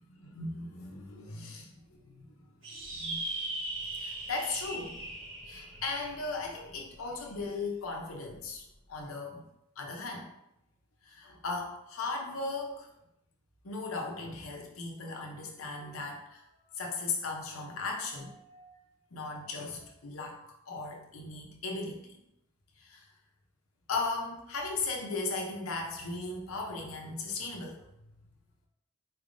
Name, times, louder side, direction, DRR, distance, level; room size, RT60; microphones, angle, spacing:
voice 1, 0.2-3.2 4.0-5.0 5.5-8.6 8.9-9.4 9.8-10.3 11.1-12.9 13.6-16.4 16.8-18.8 19.1-20.4 20.7-22.2 22.8-23.1 23.9-27.8, left 3 dB, 90° left, 1 dB, 0.8 m, -37 dB
sound 1, 2.6-7.4, right 2 dB, 65° right, 1.5 m, -39 dB
4.1 x 3.3 x 2.6 m, 0.82 s
head